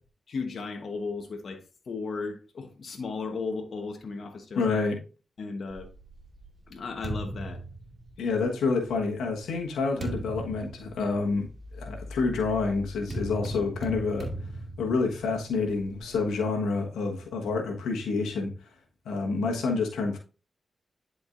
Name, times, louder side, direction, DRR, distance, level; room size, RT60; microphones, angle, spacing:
voice 1, 0.3-4.6 5.4-5.9 6.7-7.6, left 4 dB, 65° left, 1.1 m, -35 dB
voice 2, 4.5-5.0 8.2-11.5 11.7-14.3 14.8-18.5 19.0-20.2, left 4 dB, 90° left, 1.3 m, -28 dB
sound 1, 5.7-8.5 9.2-16.3, right 1 dB, 55° right, 2.2 m, -38 dB
10.5 x 4.6 x 2.6 m
supercardioid pair, 40°, 0 cm